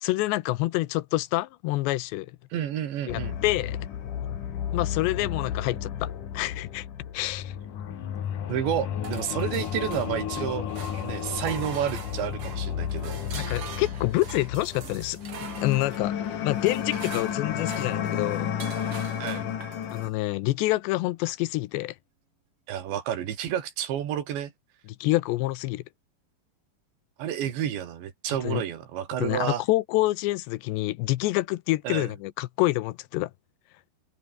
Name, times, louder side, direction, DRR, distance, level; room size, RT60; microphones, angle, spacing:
voice 1, 0.0-2.3 3.1-3.8 4.7-6.9 7.1-7.6 13.3-16.1 16.4-18.5 19.9-22.0 25.0-25.8 28.4-28.6 29.2-33.3, left 18 dB, 90° left, 2.9 m, -27 dB
voice 2, 2.5-3.4 8.5-10.7 11.0-13.2 19.2-19.5 22.7-24.5 27.2-29.6 31.8-32.1, right 10 dB, 80° right, 4.8 m, -30 dB
sound 1, 3.1-20.1, left 9 dB, 55° left, 3.3 m, -32 dB
sound 2, 9.0-10.4 10.7-20.1, right 7 dB, 40° right, 2.3 m, -43 dB
open air
omnidirectional pair, 5.1 m